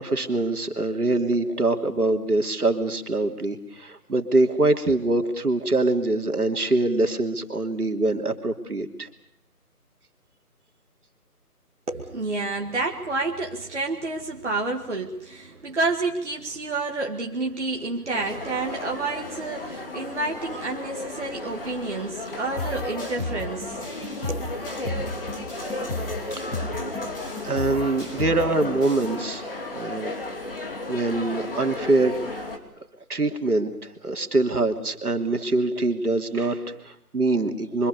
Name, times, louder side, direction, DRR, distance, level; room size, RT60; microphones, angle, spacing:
voice 1, 0.0-9.1 26.4-26.9 27.4-30.1 30.9-32.5 33.1-37.9, right 2 dB, 70° right, 5 dB, 3.1 m, -24 dB
voice 2, 11.9-23.9 24.3-24.5, right 3 dB, 45° right, 1 dB, 2.0 m, -29 dB
sound 1, 18.1-32.6, left 2 dB, 35° left, 3.1 m, -34 dB
sound 2, 22.6-29.1, left 2 dB, 15° left, 4.5 m, -34 dB
27.0 x 25.0 x 6.9 m, 0.74 s
figure-of-eight pair, 170°, 46 cm